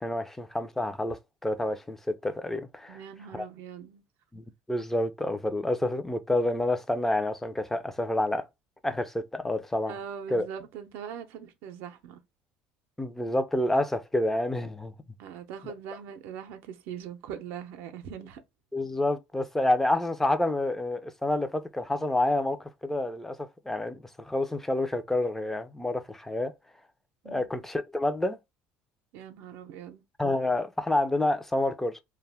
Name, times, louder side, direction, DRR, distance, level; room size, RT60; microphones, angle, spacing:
voice 1, 0.0-3.0 3.3-3.5 4.3-8.5 8.8-10.0 10.3-10.5 13.0-14.9 18.7-26.5 27.3-28.4 30.2-32.0, left 1 dB, 5° left, 0.4 m, -28 dB
voice 2, 2.9-4.0 9.9-12.2 15.2-18.4 27.2-27.5 29.1-30.0, right 8 dB, 75° right, 0.5 m, -41 dB
2.2 x 2.1 x 3.3 m
supercardioid pair, 105°, 4 cm